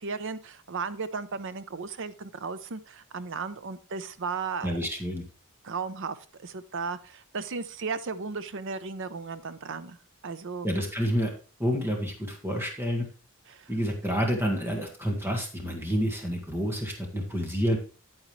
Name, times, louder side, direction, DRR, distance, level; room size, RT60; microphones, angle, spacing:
voice 1, 0.0-4.7 5.6-6.2 6.4-10.0 10.2-10.7 13.5-13.7, right 4 dB, 60° right, 13 dB, 0.7 m, -35 dB
voice 2, 4.6-5.2 10.6-11.3 11.6-13.0 13.7-17.8, equal, 10° right, 1 dB, 1.7 m, -28 dB
9.7 x 8.9 x 3.2 m, 0.35 s
head